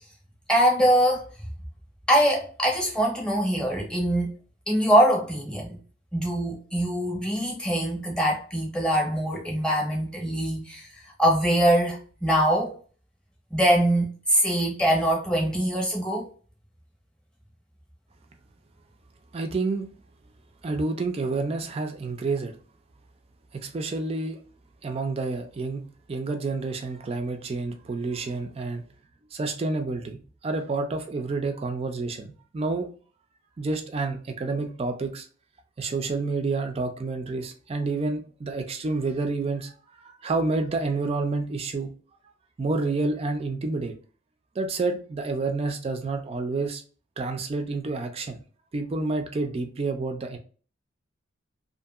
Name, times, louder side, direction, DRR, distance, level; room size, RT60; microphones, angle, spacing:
voice 1, 0.5-1.2 2.1-4.3 4.7-5.8 6.1-12.8 13.5-16.3, equal, 5° left, 0.8 m, -23 dB
voice 2, 19.3-19.9 20.6-22.6 23.5-24.4 24.8-25.8 26.1-28.8 29.3-32.9 33.6-35.3 35.8-41.9 42.6-44.0 44.6-46.8 47.2-48.4 48.7-50.4, right 3 dB, 30° right, 0.3 m, -29 dB
2.7 x 2.5 x 2.3 m
head